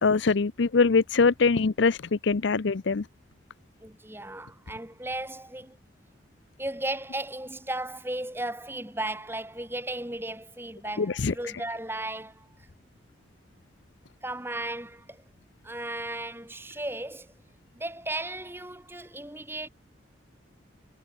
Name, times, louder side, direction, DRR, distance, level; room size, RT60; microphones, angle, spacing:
voice 1, 0.0-3.0 11.0-11.3, left 4 dB, 70° left, 0.6 m, -23 dB
voice 2, 3.8-5.8 6.6-12.5 14.2-15.2 15.6-17.3 17.7-19.7, right 1 dB, 10° right, 6.9 m, -35 dB
head